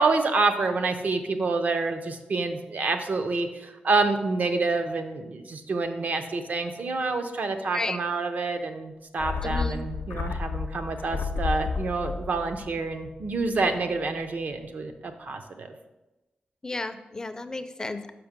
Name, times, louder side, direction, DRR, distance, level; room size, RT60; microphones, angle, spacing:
voice 1, 0.0-15.7, right 3 dB, 55° right, 6 dB, 0.7 m, -27 dB
sound 1, 9.2-13.8 14.1-14.2, left 5 dB, 90° left, 0.4 m, -32 dB
voice 2, 9.4-9.8 16.6-18.1, left 2 dB, 20° left, 9 dB, 0.4 m, -33 dB
6.0 x 5.8 x 5.2 m, 1.0 s
wide cardioid pair, 160°, 3 cm